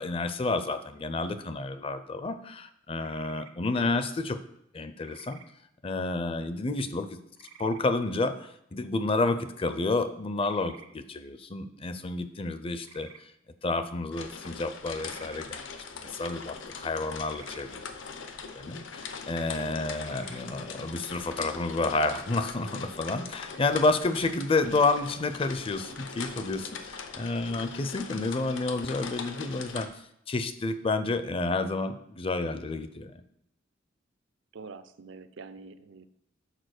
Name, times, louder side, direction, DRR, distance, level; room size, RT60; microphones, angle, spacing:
voice 1, 0.0-4.4 4.7-5.4 5.8-7.2 7.6-13.1 13.6-15.6 16.0-17.7 18.5-29.9 30.3-33.2, left 3 dB, 30° left, 10 dB, 0.5 m, -30 dB
sound 1, 3.0-3.5 5.0-5.5 7.4-7.9 10.4-10.9 12.8-13.2 14.9-15.4 17.2-17.6 20.0-20.4, right 6 dB, 90° right, 0.9 m, -51 dB
sound 2, 14.1-29.9, left 5 dB, 70° left, 0.8 m, -41 dB
voice 2, 19.6-19.9 24.7-24.8 34.5-36.1, right 4 dB, 70° right, 12 dB, 0.5 m, -44 dB
6.5 x 4.8 x 6.4 m, 0.77 s
head